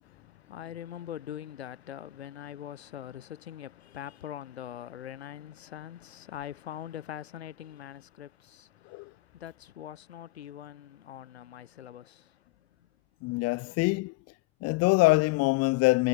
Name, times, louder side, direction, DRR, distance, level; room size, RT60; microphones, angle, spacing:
voice 1, 0.0-12.9, left 10 dB, 70° left, 7.8 m, -43 dB
voice 2, 13.2-14.1 14.6-16.1, left 24 dB, 45° left, 2.7 m, -24 dB
figure-of-eight pair, 85°, 33 cm